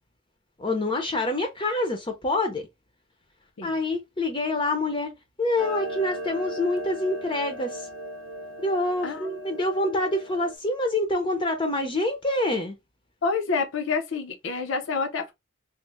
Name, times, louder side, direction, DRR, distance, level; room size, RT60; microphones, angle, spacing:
voice 1, 0.6-2.7 3.6-5.1 5.4-7.9 8.6-12.8, left 2 dB, 25° left, 0.5 m, -26 dB
Clock, 5.6-10.5, right 1 dB, 75° right, 0.7 m, -37 dB
voice 2, 13.2-15.3, left 4 dB, 70° left, 0.5 m, -28 dB
3.0 x 2.0 x 3.4 m
head